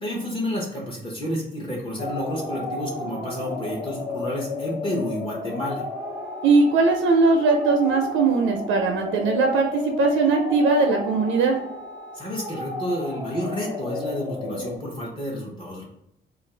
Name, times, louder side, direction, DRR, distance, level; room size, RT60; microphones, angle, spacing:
voice 1, 0.0-5.9 12.1-15.8, equal, 25° left, -4 dB, 0.8 m, -30 dB
sound 1, 2.0-14.8, left 3 dB, 50° left, 1.2 m, -33 dB
voice 2, 6.4-11.6, right 4 dB, 80° right, 3 dB, 0.4 m, -20 dB
2.4 x 2.3 x 3.2 m, 0.79 s
cardioid pair, 90°, 20 cm